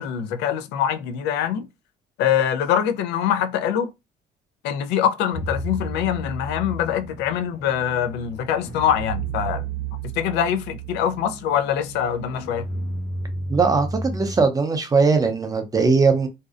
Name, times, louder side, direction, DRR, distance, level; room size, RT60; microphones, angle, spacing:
voice 1, 0.0-1.6 2.2-3.9 4.6-9.7 10.0-12.7, left 9 dB, 90° left, 0.4 m, -24 dB
sound 1, 5.3-14.4, right 2 dB, 60° left, 1.1 m, -33 dB
voice 2, 13.5-16.3, right 4 dB, 20° right, 0.5 m, -19 dB
2.6 x 2.0 x 2.4 m
cardioid pair, 110°, 17 cm